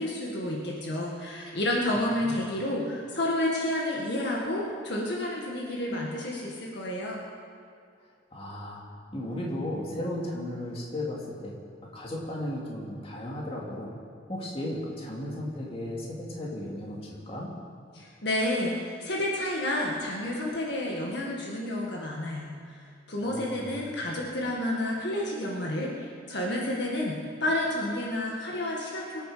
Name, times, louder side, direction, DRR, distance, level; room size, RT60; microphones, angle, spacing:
voice 1, 0.0-7.2 17.9-22.8 23.1-29.2, left 1 dB, 60° left, -2 dB, 1.9 m, -30 dB
voice 2, 8.3-8.8 9.1-11.5 11.9-13.9 14.3-17.5 23.2-23.8, left 1 dB, 30° left, -3 dB, 2.6 m, -35 dB
24.0 x 9.2 x 5.1 m, 2.3 s
head